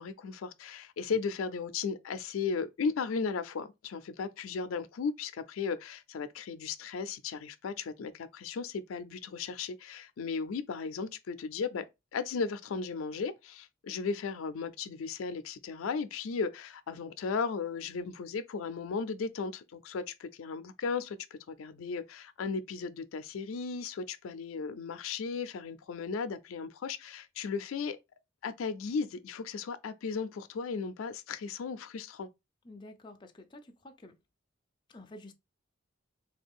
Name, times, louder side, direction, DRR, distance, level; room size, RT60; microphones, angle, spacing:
voice 1, 0.0-11.8 12.1-21.2 21.5-28.0 28.4-32.3, left 5 dB, 90° left, 0.4 m, -36 dB
voice 2, 32.7-34.1 34.9-35.3, left 1 dB, 25° left, 0.4 m, -50 dB
3.3 x 2.3 x 3.5 m
head